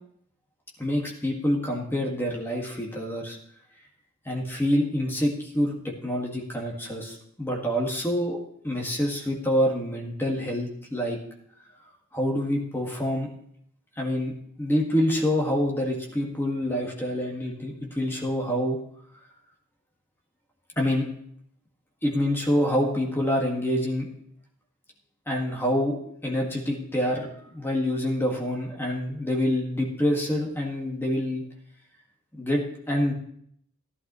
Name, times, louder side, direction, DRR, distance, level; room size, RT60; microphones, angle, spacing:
voice 1, 0.8-3.4 4.2-8.4 8.6-11.2 12.1-13.3 14.0-14.3 14.6-18.8 20.7-21.1 22.0-24.0 25.3-31.4 32.4-33.1, equal, 10° left, -1 dB, 1.8 m, -26 dB
15.5 x 11.5 x 3.1 m, 0.67 s
head